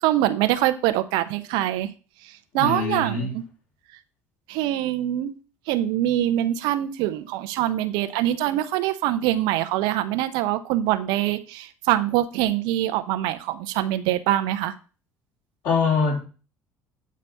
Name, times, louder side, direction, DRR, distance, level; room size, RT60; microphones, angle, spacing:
voice 1, 0.0-1.9 2.2-3.4 4.5-5.3 5.7-14.7, right 13 dB, 65° right, 11 dB, 0.7 m, -24 dB
voice 2, 2.5-3.3 15.6-16.3, left 5 dB, 60° left, -3 dB, 4.1 m, -23 dB
8.4 x 4.2 x 5.3 m, 0.35 s
figure-of-eight pair, 60°, 8 cm